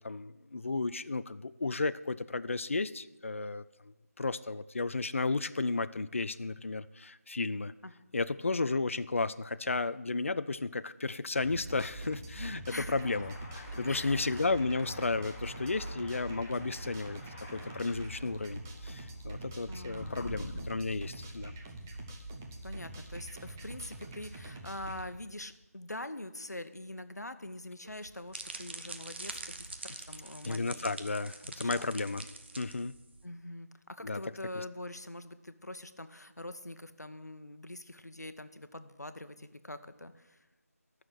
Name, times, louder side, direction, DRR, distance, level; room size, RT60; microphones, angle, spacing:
voice 1, 0.0-3.6 4.2-7.7 8.1-21.5 30.4-32.2 32.5-32.9 34.0-34.2 34.6-34.7, left 3 dB, 50° left, 14 dB, 0.4 m, -33 dB
sound 1, 11.4-25.1, right 1 dB, 10° right, 0.6 m, -44 dB
voice 2, 12.7-13.0 13.9-14.5 19.7-20.3 22.6-30.7 31.4-31.9 33.2-40.4, left 1 dB, 85° left, 11 dB, 1.0 m, -44 dB
sound 2, 12.9-20.7, left 2 dB, 20° left, 1.3 m, -48 dB
sound 3, 27.8-33.2, right 3 dB, 40° right, 0.9 m, -45 dB
11.5 x 6.5 x 9.1 m, 1.0 s
figure-of-eight pair, 165°, 9 cm